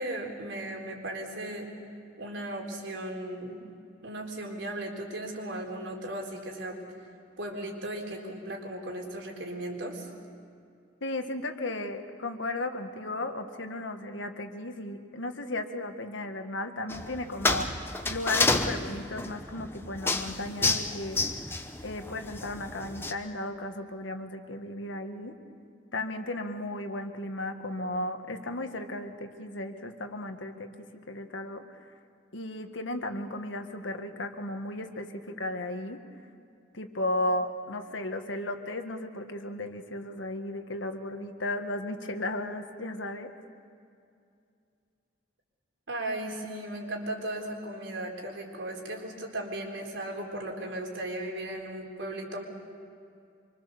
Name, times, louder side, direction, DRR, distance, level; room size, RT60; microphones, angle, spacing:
voice 1, 0.0-1.7 2.2-3.6 4.0-6.8 7.4-10.1 45.9-52.4, right 1 dB, 80° right, 0 dB, 4.0 m, -36 dB
voice 2, 11.0-17.8 18.1-21.2 21.8-25.4 25.9-31.6 32.3-36.0 36.7-43.3, left 1 dB, 80° left, 6 dB, 1.7 m, -35 dB
sound 1, 16.9-23.1, left 2 dB, 10° left, 0.9 m, -30 dB
26.5 x 24.0 x 6.9 m, 2.4 s
head